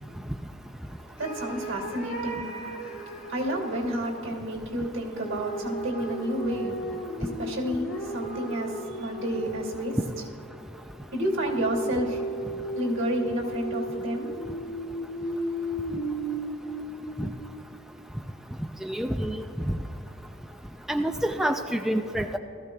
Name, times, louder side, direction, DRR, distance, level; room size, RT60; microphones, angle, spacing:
sound 1, 1.2-4.2 5.2-10.0 11.4-17.5, right 1 dB, 85° left, 3.0 m, -35 dB
voice 1, 1.2-2.4 3.3-6.7 7.2-10.0 11.1-12.2 12.7-14.3, equal, 70° right, -1 dB, 2.5 m, -30 dB
voice 2, 18.8-19.4 20.9-22.4, right 1 dB, ahead, 4 dB, 0.3 m, -27 dB
18.5 x 14.0 x 2.3 m, 3.0 s
head